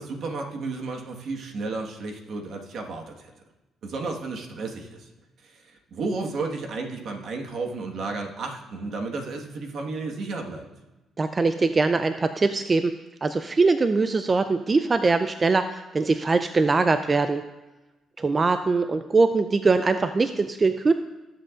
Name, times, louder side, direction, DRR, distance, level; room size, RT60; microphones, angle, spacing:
voice 1, 0.0-3.3 3.8-5.1 5.4-10.7, right 3 dB, 65° right, 2 dB, 1.5 m, -33 dB
voice 2, 11.2-12.9 13.2-17.4 18.2-20.9, right 3 dB, 30° right, 9 dB, 0.4 m, -22 dB
19.5 x 7.6 x 2.5 m, 1.1 s
cardioid pair, 90°, 0 cm